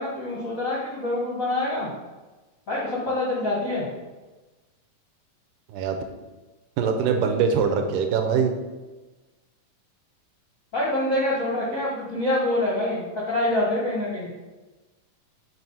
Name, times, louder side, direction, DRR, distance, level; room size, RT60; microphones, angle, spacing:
voice 1, 0.0-1.9 2.7-3.8 10.7-14.3, left 1 dB, 70° left, -6 dB, 0.7 m, -26 dB
voice 2, 6.8-8.5, right 6 dB, 80° right, 5 dB, 2.2 m, -23 dB
5.8 x 4.7 x 5.4 m, 1.2 s
omnidirectional pair, 3.9 m